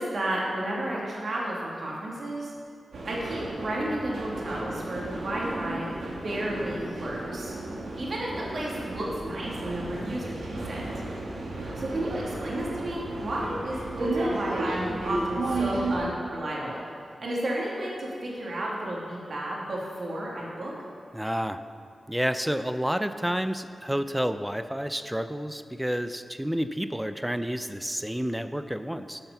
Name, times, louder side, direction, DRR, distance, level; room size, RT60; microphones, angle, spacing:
voice 1, 0.0-2.5 3.1-7.6 8.0-10.8 11.8-16.8 17.2-20.7, right 1 dB, 65° right, -4 dB, 2.7 m, -32 dB
sound 1, 2.9-16.0, right 2 dB, 85° right, 1.8 m, -33 dB
voice 2, 21.1-21.6 22.1-29.2, equal, 5° right, 10 dB, 0.6 m, -30 dB
12.0 x 5.8 x 6.9 m, 2.3 s
cardioid pair, 50°, 0 cm